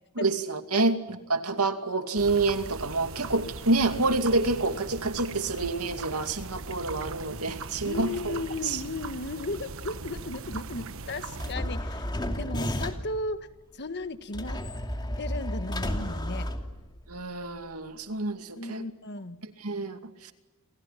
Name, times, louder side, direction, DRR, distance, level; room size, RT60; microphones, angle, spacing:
voice 1, 0.2-8.8 17.1-18.8 19.6-20.3, right 3 dB, 80° right, 7 dB, 2.5 m, -28 dB
sound 1, 2.2-11.5, right 4 dB, 65° right, 1.3 m, -40 dB
voice 2, 7.8-12.1 12.4-13.5 13.7-14.6 15.2-16.5 18.5-19.4, left 2 dB, 50° left, 10 dB, 1.6 m, -35 dB
sound 2, 11.4-13.2 14.3-17.2, equal, 20° left, 2.7 m, -32 dB
30.0 x 26.5 x 5.9 m, 1.1 s
head